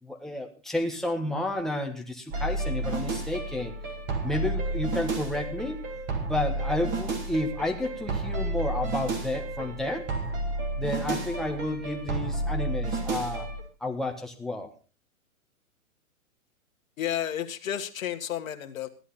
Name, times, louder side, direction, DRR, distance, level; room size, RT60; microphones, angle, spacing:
voice 1, 0.0-3.7 4.2-5.8 6.2-10.0 10.8-13.5 13.8-14.7, left 1 dB, ahead, 1 dB, 1.6 m, -31 dB
sound 1, 2.3-13.6, right 2 dB, 25° right, 3.3 m, -31 dB
voice 2, 17.0-18.9, left 10 dB, 65° left, 5 dB, 1.9 m, -31 dB
15.5 x 11.0 x 4.2 m, 0.34 s
hypercardioid pair, 145°, 43 cm